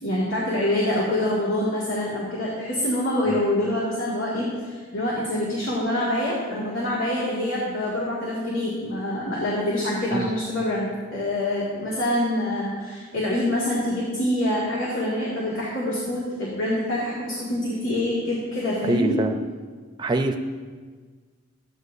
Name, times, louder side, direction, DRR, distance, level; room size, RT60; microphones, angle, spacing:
voice 1, 0.0-19.1, left 1 dB, 80° left, -7 dB, 2.2 m, -26 dB
voice 2, 18.8-19.3 20.0-20.4, right 2 dB, 20° right, 4 dB, 0.6 m, -24 dB
14.5 x 9.8 x 2.7 m, 1.5 s
head